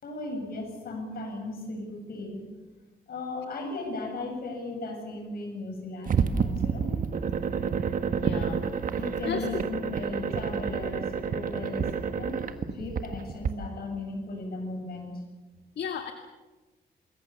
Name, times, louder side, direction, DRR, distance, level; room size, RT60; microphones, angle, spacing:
voice 1, 0.0-2.4 3.1-7.0 8.9-12.4 12.7-15.2, left 2 dB, 65° left, 3 dB, 7.7 m, -36 dB
sound 1, 6.1-13.5, right 6 dB, 55° right, 1.5 m, -29 dB
voice 2, 8.2-8.6 9.3-9.6 15.8-16.1, left 7 dB, 80° left, 5 dB, 2.0 m, -33 dB
27.5 x 21.0 x 7.1 m, 1.2 s
wide cardioid pair, 135°, 17 cm